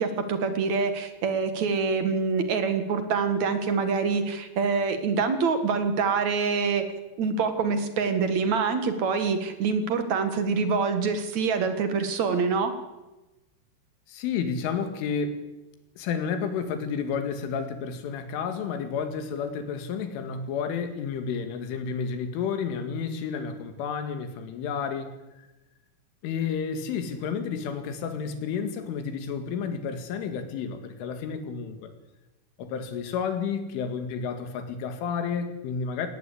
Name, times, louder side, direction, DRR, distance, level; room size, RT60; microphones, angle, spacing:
voice 1, 0.0-6.9 7.2-12.7, right 5 dB, 55° right, 9 dB, 2.1 m, -25 dB
voice 2, 14.1-15.4 16.0-25.1 26.2-31.9 32.6-36.1, left 6 dB, 85° left, 8 dB, 4.7 m, -31 dB
19.0 x 18.0 x 8.5 m, 1.0 s
omnidirectional pair, 5.5 m